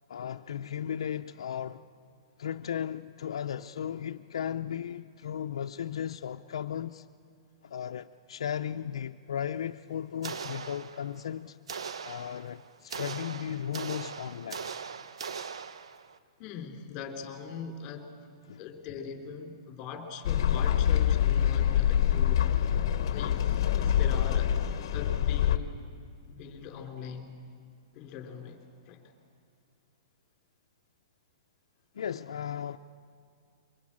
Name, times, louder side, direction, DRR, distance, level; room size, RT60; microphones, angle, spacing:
voice 1, 0.1-1.8 2.4-7.0 7.6-11.6 12.0-14.7 18.5-18.6 31.9-32.8, left 9 dB, 80° left, 0.6 m, -35 dB
sound 1, 10.2-11.3 11.7-16.2, right 6 dB, 90° right, 0.9 m, -40 dB
voice 2, 16.4-18.1 18.6-22.8 23.1-24.5 24.9-25.8 26.3-27.3 27.9-29.1, left 6 dB, 25° left, 3.3 m, -42 dB
sound 2, 20.2-25.6, left 10 dB, 50° left, 1.0 m, -25 dB
23.5 x 22.0 x 8.7 m
hypercardioid pair, 165°, 3 cm